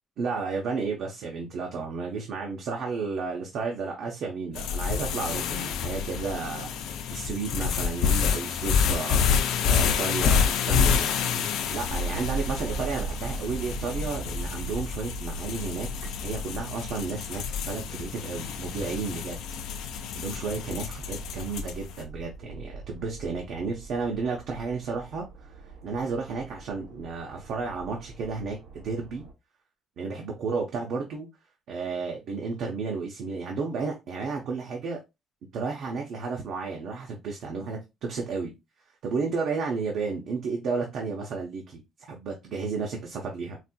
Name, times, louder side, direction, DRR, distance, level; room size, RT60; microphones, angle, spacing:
voice 1, 0.2-6.7 7.1-9.2 9.6-11.1 11.7-15.9 16.2-19.4 20.1-25.5 25.8-29.2 30.0-31.3 31.7-35.0 35.5-38.5 39.0-41.8 42.1-43.6, right 4 dB, 60° right, 0.7 m, -32 dB
sound 1, 4.6-21.9, left 7 dB, 85° left, 0.4 m, -28 dB
sound 2, 11.9-29.3, right 4 dB, 90° right, 0.9 m, -40 dB
4.1 x 2.6 x 2.2 m
cardioid pair, 155°, 0 cm